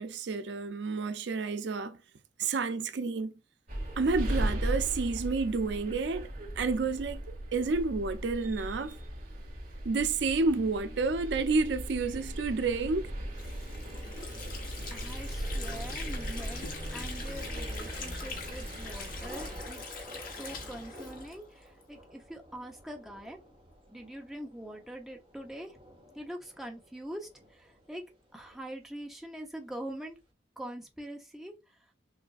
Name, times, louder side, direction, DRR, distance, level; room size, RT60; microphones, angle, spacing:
voice 1, 0.0-2.0 2.4-3.3 4.0-7.3 7.5-9.0 9.8-13.1, right 4 dB, 70° right, 0.5 m, -30 dB
sound 1, 3.7-19.6, right 1 dB, 55° right, 2.1 m, -37 dB
Water / Sink (filling or washing), 13.3-21.9, left 4 dB, 55° left, 1.2 m, -43 dB
voice 2, 14.9-20.0 20.4-23.4 23.9-25.8 26.1-28.0 28.3-30.1 30.6-31.5, right 1 dB, ahead, 0.8 m, -43 dB
Thunder / Rain, 18.3-29.2, equal, 30° right, 1.4 m, -52 dB
6.3 x 2.5 x 2.4 m
head